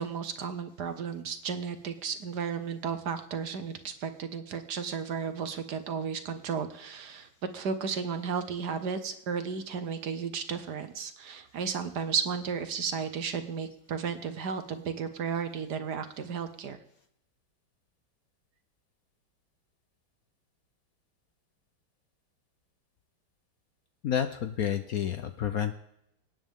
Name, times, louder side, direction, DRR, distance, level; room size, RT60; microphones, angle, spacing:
voice 1, 0.0-7.3 7.5-16.8, right 6 dB, 60° right, 9 dB, 1.5 m, -34 dB
voice 2, 24.0-25.7, left 9 dB, 60° left, 9 dB, 1.0 m, -30 dB
26.0 x 9.2 x 3.7 m, 0.78 s
omnidirectional pair, 2.1 m